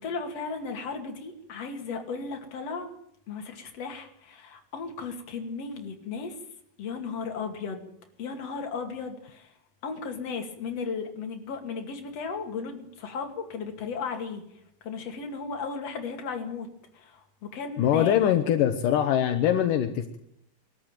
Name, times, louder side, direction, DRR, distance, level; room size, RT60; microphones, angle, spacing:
voice 1, 0.0-2.9 3.3-6.3 6.8-7.8 8.2-9.5 9.8-14.4 14.8-16.7 16.9-18.2, left 5 dB, 50° left, 4 dB, 3.4 m, -35 dB
voice 2, 17.8-20.2, left 10 dB, 80° left, 7 dB, 2.7 m, -23 dB
22.0 x 13.5 x 9.1 m, 0.72 s
omnidirectional pair, 3.8 m